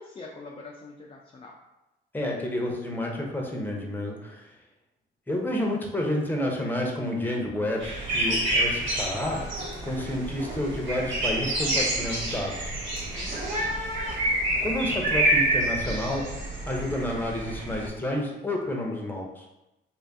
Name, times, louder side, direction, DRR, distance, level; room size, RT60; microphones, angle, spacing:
voice 1, 0.0-1.5 13.1-13.7, left 3 dB, 30° left, -2 dB, 0.4 m, -44 dB
voice 2, 2.1-4.5 5.3-9.5 9.8-12.8 14.6-16.3 16.6-19.4, left 1 dB, 10° left, 0 dB, 0.8 m, -30 dB
sound 1, 7.6-7.9 8.2-8.6 9.0-15.0, equal, 40° right, 0.8 m, -38 dB
sound 2, 7.8-17.9, right 1 dB, 70° right, 1.2 m, -28 dB
3.1 x 2.6 x 3.4 m, 0.94 s
cardioid pair, 90°, 20 cm